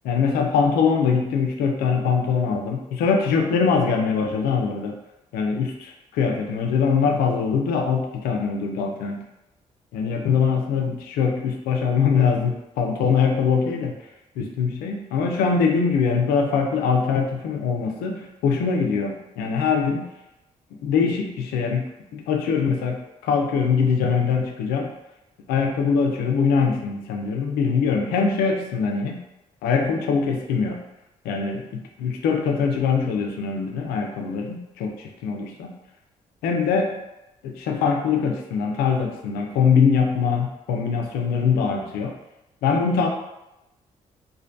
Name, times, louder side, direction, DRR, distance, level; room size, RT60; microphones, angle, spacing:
voice 1, 0.0-4.9 5.3-9.2 9.9-14.0 14.4-20.0 20.8-21.8 22.1-24.9 25.5-29.2 29.6-30.8 31.2-35.7 36.4-36.9 37.4-42.1 42.6-43.1, left 5 dB, 90° left, 2 dB, 0.4 m, -22 dB
2.6 x 2.2 x 2.5 m, 0.91 s
supercardioid pair, 55°, 15 cm